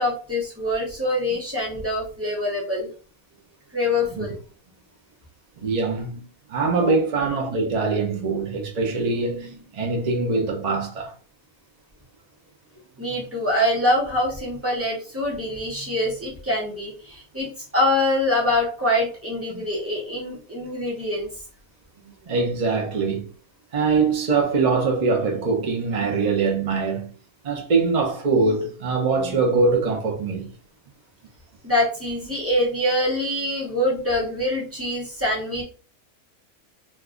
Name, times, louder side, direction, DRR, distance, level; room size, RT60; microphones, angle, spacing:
voice 1, 0.0-2.9 3.7-4.3 6.9-7.0 13.0-17.5 17.7-21.3 31.6-35.6, left 1 dB, 10° right, 0.9 m, -24 dB
voice 2, 5.6-11.1 19.5-19.7 22.2-23.3 23.7-27.1 27.4-30.5, right 4 dB, 55° right, 0.4 m, -23 dB
2.5 x 2.3 x 3.6 m
omnidirectional pair, 1.5 m